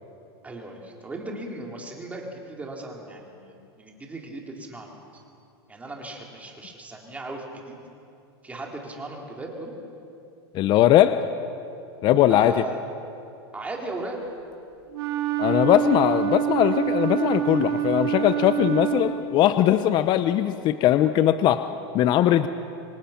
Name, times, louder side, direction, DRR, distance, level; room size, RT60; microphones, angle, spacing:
voice 1, 0.4-5.2 5.7-7.8 8.4-9.7 12.3-12.8 13.5-14.2 20.3-20.6, right 2 dB, 10° right, 0 dB, 3.8 m, -37 dB
voice 2, 10.5-11.3 12.0-12.6 15.4-21.7 21.9-22.5, left 12 dB, 35° left, 11 dB, 0.7 m, -20 dB
Wind instrument woodwind instrument, 14.9-19.4, right 10 dB, 80° right, 4.0 m, -26 dB
27.0 x 24.0 x 5.9 m, 2.7 s
supercardioid pair, 140°, 13 cm